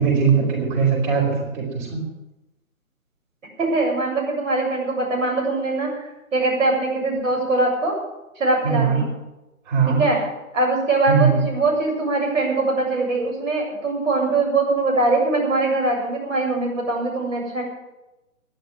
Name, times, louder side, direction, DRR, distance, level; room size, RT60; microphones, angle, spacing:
voice 1, 0.0-2.0 8.6-9.1 9.7-10.0 11.1-11.4, right 6 dB, 35° right, -2 dB, 5.0 m, -20 dB
voice 2, 3.6-6.0 6.3-7.9 8.4-9.1 9.9-10.2 10.5-17.6, right 2 dB, 65° right, 0 dB, 7.6 m, -22 dB
13.0 x 10.5 x 9.2 m, 0.99 s
figure-of-eight pair, 140°, 42 cm